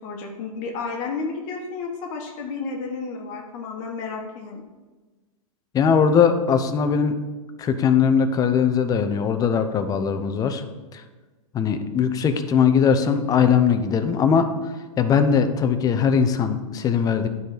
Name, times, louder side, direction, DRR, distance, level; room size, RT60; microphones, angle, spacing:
voice 1, 0.0-4.6, left 4 dB, 45° left, 1 dB, 1.4 m, -32 dB
voice 2, 5.7-7.2 7.6-10.6 10.9-11.0 11.5-17.3, left 6 dB, 20° left, 8 dB, 0.6 m, -20 dB
9.9 x 4.1 x 5.0 m, 1.3 s
hypercardioid pair, 120°, 18 cm